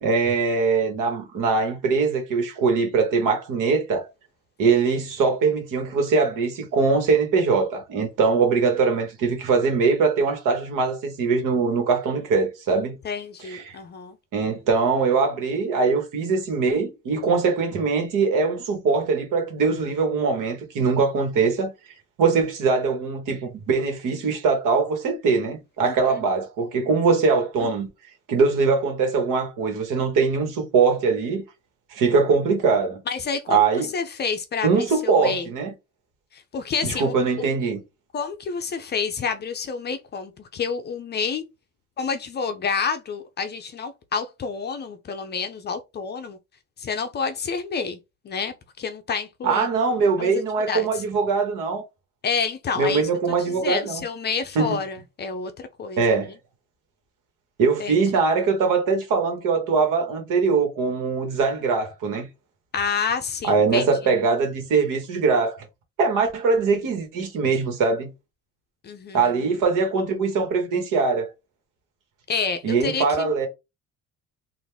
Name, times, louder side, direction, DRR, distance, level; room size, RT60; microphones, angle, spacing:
voice 1, 0.0-4.1 4.6-13.0 13.5-13.8 14.3-21.7 22.2-27.9 28.3-31.4 31.9-33.0 33.5-33.9 34.6-35.7 36.8-37.8 49.4-51.8 52.7-54.0 54.5-54.7 56.0-56.3 57.6-62.3 63.4-65.6 66.0-68.1 69.1-71.3 72.6-73.5, right 4 dB, 70° right, 1.6 m, -22 dB
voice 2, 13.0-14.2 25.8-26.2 27.6-27.7 33.1-35.5 36.3-37.1 38.1-41.4 42.0-46.4 46.8-48.0 48.2-49.7 50.2-51.0 52.2-53.1 53.4-56.3 57.8-58.0 62.7-64.1 68.8-69.5 72.3-73.3, left 5 dB, 30° left, 0.5 m, -29 dB
4.0 x 2.6 x 3.4 m
cardioid pair, 165°, 32 cm